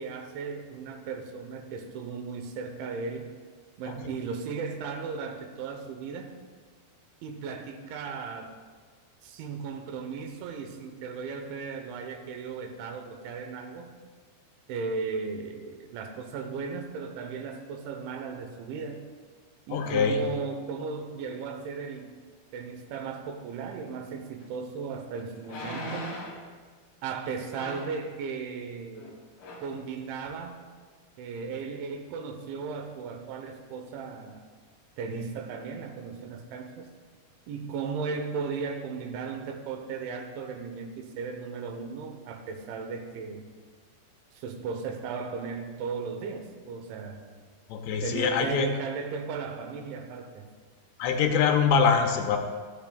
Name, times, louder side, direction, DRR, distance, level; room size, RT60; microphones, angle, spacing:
voice 1, 0.0-3.3 3.8-6.4 7.2-8.6 9.2-14.0 14.7-19.1 19.7-22.1 22.5-26.2 27.0-29.2 29.6-30.6 31.2-34.4 35.0-36.9 37.5-43.5 44.3-47.2 48.0-50.5, right 5 dB, 90° right, 6 dB, 3.3 m, -36 dB
voice 2, 19.7-20.2 47.7-48.7 51.0-52.4, left 6 dB, 80° left, 4 dB, 2.8 m, -24 dB
sound 1, 24.4-24.5 25.4-26.5 27.5-28.0 28.9-29.1 29.4-29.7 30.3-30.4, equal, 50° left, 3.0 m, -38 dB
24.5 x 8.3 x 2.3 m, 1.5 s
omnidirectional pair, 5.2 m